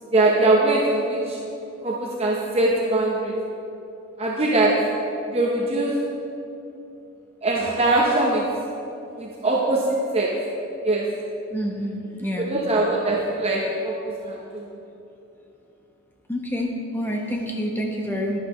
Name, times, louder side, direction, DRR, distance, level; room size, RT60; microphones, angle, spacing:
voice 1, 0.1-1.4 1.8-3.3 4.2-4.7 5.3-6.0 7.4-8.4 9.2-10.3 10.8-11.1 12.5-14.6, right 2 dB, 25° right, -3 dB, 0.8 m, -22 dB
voice 2, 11.5-12.5 16.3-18.4, equal, 10° left, 0 dB, 0.9 m, -28 dB
11.5 x 10.5 x 3.1 m, 2.8 s
head